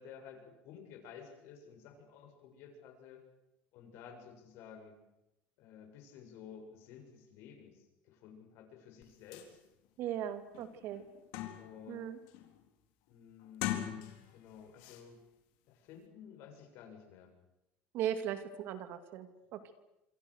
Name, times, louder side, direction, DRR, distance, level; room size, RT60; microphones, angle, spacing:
voice 1, 0.0-3.2 3.7-5.0 5.6-9.6 11.6-12.1 13.1-15.2 15.7-17.3, left 7 dB, 60° left, 4 dB, 7.4 m, -53 dB
sound 1, 9.0-9.1 9.3-9.5 10.0-10.1 10.5-11.9 12.3-12.6 13.4-14.4 14.8-15.0, left 13 dB, 85° left, 4.2 m, -40 dB
voice 2, 10.0-11.0 11.9-12.2 17.9-19.7, right 10 dB, 55° right, 9 dB, 2.6 m, -38 dB
27.5 x 26.5 x 6.7 m, 0.89 s
cardioid pair, 155°, 5 cm